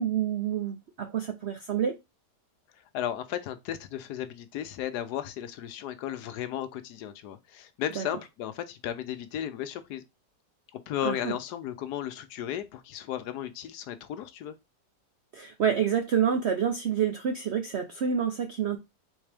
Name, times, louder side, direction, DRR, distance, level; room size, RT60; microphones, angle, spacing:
voice 1, 0.0-2.0 8.0-8.1 11.0-11.3 15.3-18.8, right 8 dB, 70° right, 0.6 m, -28 dB
voice 2, 2.7-10.0 10.7-14.5, left 11 dB, 75° left, 1.1 m, -35 dB
4.0 x 3.6 x 3.4 m
omnidirectional pair, 1.8 m